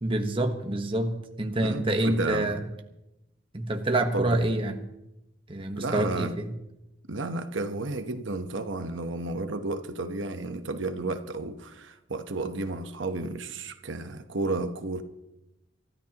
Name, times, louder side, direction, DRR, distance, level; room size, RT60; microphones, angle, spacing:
voice 1, 0.0-2.6 3.5-4.8 5.5-6.5, right 1 dB, 30° right, 1.2 m, -27 dB
voice 2, 1.6-2.6 4.1-4.5 5.8-6.3 7.1-15.0, right 2 dB, 80° right, 1.0 m, -32 dB
28.0 x 13.5 x 3.0 m
head